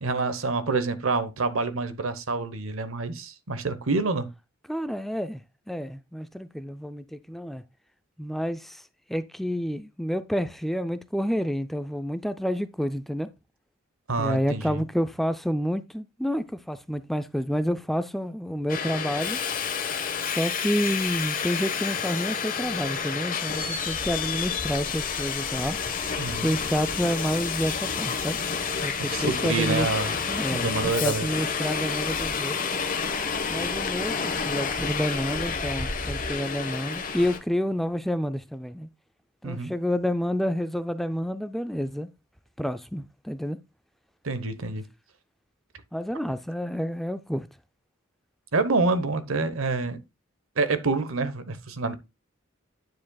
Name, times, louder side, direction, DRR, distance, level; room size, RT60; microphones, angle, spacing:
voice 1, 0.0-4.3 14.1-14.8 26.2-26.5 29.0-30.1 30.5-31.3 39.4-39.7 44.2-44.9 48.5-50.0 50.6-52.0, right 3 dB, 70° right, 1.0 m, -27 dB
voice 2, 4.7-5.4 5.7-7.6 8.2-8.8 9.1-13.3 14.2-19.4 20.3-25.8 26.4-28.4 28.8-29.9 30.3-32.6 33.5-38.9 39.4-42.1 42.6-43.6 45.9-47.5, equal, ahead, 0.3 m, -29 dB
Subway metro underground, 18.7-37.4, left 6 dB, 40° left, 1.2 m, -29 dB
9.4 x 7.5 x 2.3 m
head